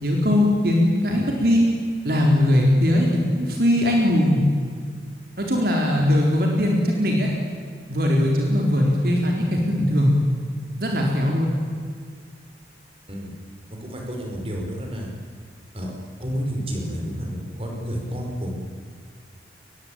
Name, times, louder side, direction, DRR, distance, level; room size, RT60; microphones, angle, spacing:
voice 1, 0.0-1.7 2.0-4.5 5.4-7.3 7.9-10.2 10.8-11.6, left 1 dB, 55° right, 0 dB, 4.1 m, -20 dB
voice 2, 13.7-15.1 15.7-15.9 16.2-18.6, equal, 30° right, 1 dB, 5.5 m, -30 dB
23.5 x 21.0 x 9.0 m, 2.1 s
head